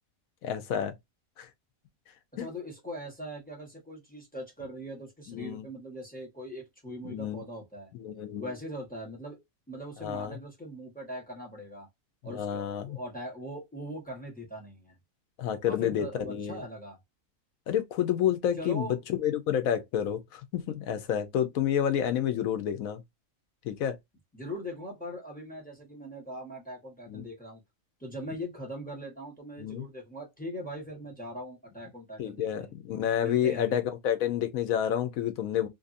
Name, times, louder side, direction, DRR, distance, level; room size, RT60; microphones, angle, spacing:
voice 1, 0.4-0.9 1.4-1.5 2.4-2.5 5.3-5.6 7.0-7.4 7.9-8.5 10.0-10.4 12.2-13.0 15.4-16.6 17.7-23.0 23.6-24.0 27.1-27.3 29.6-29.8 32.2-35.7, left 10 dB, 85° left, 1.1 m, -29 dB
voice 2, 2.3-7.9 8.4-9.4 9.7-11.9 12.2-14.9 15.6-17.0 18.6-19.0 24.3-27.6 28.0-32.7 33.2-33.8, equal, 5° left, 1.2 m, -41 dB
2.7 x 2.6 x 2.5 m
omnidirectional pair, 1.4 m